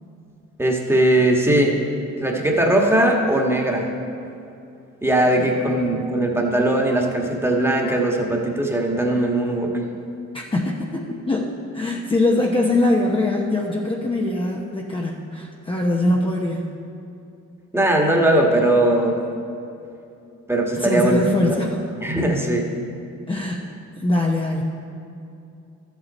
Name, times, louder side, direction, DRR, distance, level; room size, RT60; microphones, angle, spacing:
voice 1, 0.6-1.7 2.2-3.9 5.0-9.8 17.7-19.2 20.5-21.3 21.6-21.7 22.0-22.7, right 1 dB, 10° right, 0 dB, 1.5 m, -19 dB
voice 2, 5.2-5.6 10.3-16.8 20.8-21.8 23.3-24.6, left 2 dB, 15° left, -1 dB, 0.9 m, -23 dB
12.5 x 8.2 x 4.2 m, 2.7 s
cardioid pair, 90°, 30 cm